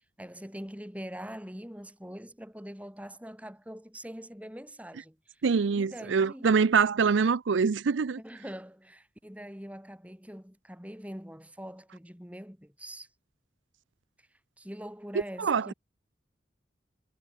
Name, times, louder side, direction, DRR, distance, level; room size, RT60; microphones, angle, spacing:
voice 1, 0.2-5.4 5.7-6.5 8.2-13.1 14.6-15.7, equal, 5° right, 3.4 m, -43 dB
voice 2, 5.4-8.2 15.4-15.7, right 5 dB, 80° right, 0.5 m, -24 dB
head